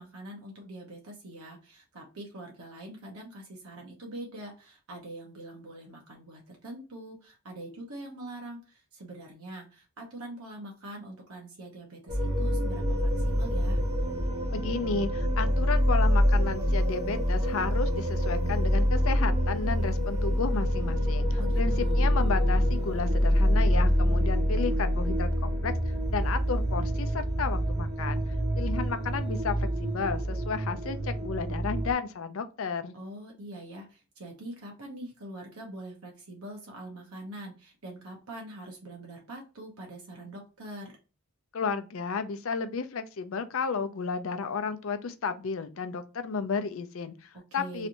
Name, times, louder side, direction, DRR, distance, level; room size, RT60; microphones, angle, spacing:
voice 1, 0.0-13.8 21.4-22.1 32.9-41.0 47.5-47.9, right 1 dB, 80° right, 1.0 m, -43 dB
sound 1, 12.1-31.9, equal, 30° right, 0.9 m, -26 dB
voice 2, 14.5-25.7 26.1-28.2 28.6-33.0 41.5-47.9, left 5 dB, 65° left, 0.5 m, -33 dB
3.2 x 2.6 x 2.8 m
head